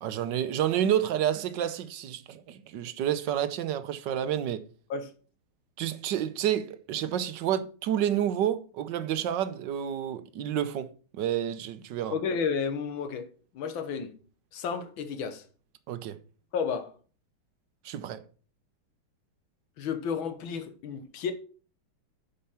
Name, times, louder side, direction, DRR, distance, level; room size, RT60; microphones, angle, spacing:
voice 1, 0.0-4.6 5.8-12.1 15.9-16.2 17.8-18.2, right 10 dB, 65° right, 1.3 m, -29 dB
voice 2, 12.1-14.2 14.5-15.4 16.5-16.9 19.8-21.3, left 6 dB, 75° left, 1.9 m, -32 dB
8.8 x 5.6 x 5.6 m
omnidirectional pair, 2.3 m